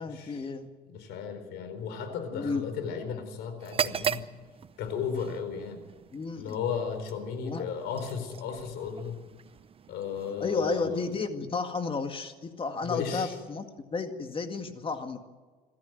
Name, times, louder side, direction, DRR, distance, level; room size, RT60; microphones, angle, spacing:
voice 1, 0.0-0.7 2.3-2.6 6.1-6.6 7.4-7.7 10.4-15.2, left 4 dB, 30° left, 6 dB, 2.1 m, -32 dB
voice 2, 0.9-4.2 4.8-5.8 6.4-9.2 9.9-11.0 12.8-13.3, left 6 dB, 85° left, 9 dB, 4.4 m, -35 dB
sound 1, 3.6-11.4, right 7 dB, 35° right, 0.8 m, -38 dB
26.5 x 13.5 x 9.2 m, 1.4 s
cardioid pair, 110°, 17 cm